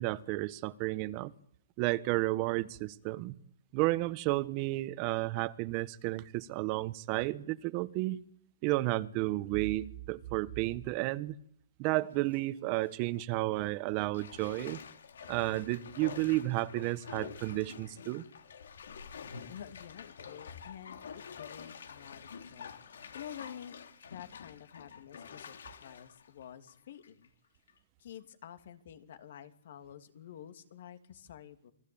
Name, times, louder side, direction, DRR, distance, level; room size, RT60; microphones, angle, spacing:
voice 1, 0.0-1.3 1.8-3.3 3.7-8.2 8.6-11.3 11.8-14.8 15.3-18.3, right 19 dB, 35° right, 15 dB, 1.3 m, -32 dB
Bathtub (filling or washing), 12.0-12.4 12.8-13.0 14.1-27.3 27.7-27.8, left 6 dB, 90° left, 3.3 m, -48 dB
voice 2, 19.5-22.7 23.1-23.8 24.1-27.3 28.0-31.7, left 9 dB, 65° left, 9 dB, 3.1 m, -49 dB
28.5 x 21.5 x 8.9 m, 0.66 s
hypercardioid pair, 150°, 0 cm